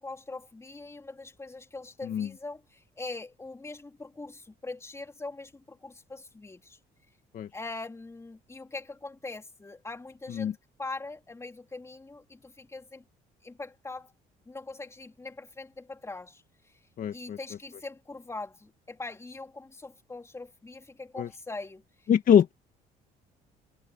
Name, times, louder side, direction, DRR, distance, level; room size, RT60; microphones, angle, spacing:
voice 1, 0.0-6.8 7.5-13.0 13.4-14.1 14.5-16.4 17.1-21.8, left 3 dB, 15° left, 3.5 m, -42 dB
voice 2, 17.0-17.4 21.2-21.3 22.1-22.5, left 9 dB, 55° left, 1.7 m, -23 dB
cardioid pair, 110°, 17 cm